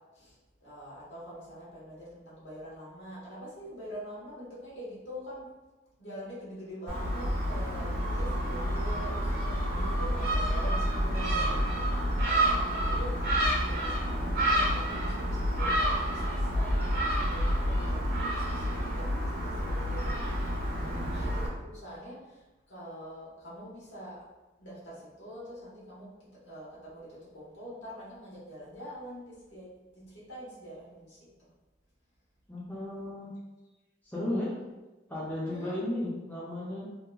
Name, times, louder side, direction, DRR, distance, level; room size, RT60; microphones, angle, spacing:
voice 1, 0.1-5.5 6.0-13.3 13.6-20.5 21.0-24.2 24.6-31.3 35.4-35.8, equal, 70° left, -8 dB, 1.2 m, -45 dB
Gull seagull, 6.9-21.5, equal, 50° right, 0.5 m, -29 dB
voice 2, 20.8-21.1 32.5-33.3 34.0-34.5 35.1-36.9, left 1 dB, 10° left, -8 dB, 0.4 m, -34 dB
2.8 x 2.2 x 2.3 m, 1.1 s
head